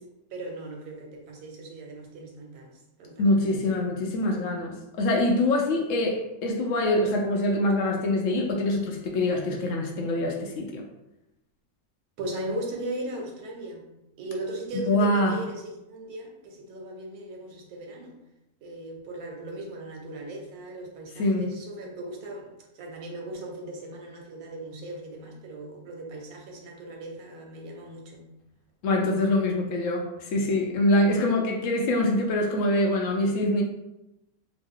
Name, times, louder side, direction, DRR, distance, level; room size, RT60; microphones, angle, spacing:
voice 1, 0.3-2.7 3.0-3.6 12.2-13.8 14.2-18.2 18.6-22.5 22.7-28.3, right 1 dB, 90° right, 1 dB, 1.2 m, -38 dB
voice 2, 3.2-10.8 14.9-15.4 21.2-21.5 28.8-33.6, left 1 dB, 70° left, 1 dB, 0.9 m, -24 dB
2.9 x 2.0 x 3.6 m, 0.90 s
omnidirectional pair, 1.5 m